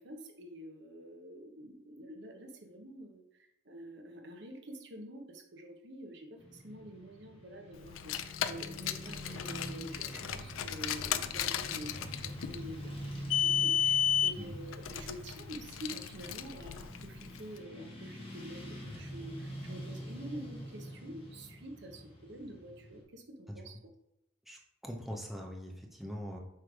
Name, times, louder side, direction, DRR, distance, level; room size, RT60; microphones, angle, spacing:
voice 1, 0.0-13.1 13.4-23.8, right 1 dB, 60° right, 4 dB, 1.1 m, -47 dB
Motorcycle / Traffic noise roadway noise, 6.4-23.0, equal, 30° left, 1.8 m, -46 dB
Car, 7.9-17.4, left 9 dB, 80° left, 0.4 m, -33 dB
voice 2, 24.5-26.4, equal, ahead, 0 dB, 0.7 m, -42 dB
7.9 x 3.3 x 4.7 m, 0.86 s
head